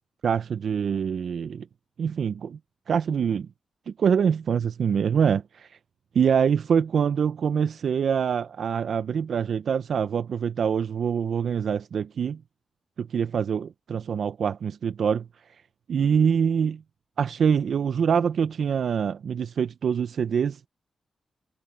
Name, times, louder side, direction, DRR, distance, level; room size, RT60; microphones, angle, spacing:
voice 1, 0.2-1.7 2.0-2.6 2.9-3.5 4.0-5.8 6.1-12.4 13.0-15.3 15.9-16.8 17.2-20.7, right 7 dB, 75° right, 0.5 m, -25 dB
cardioid pair, 70°, 0 cm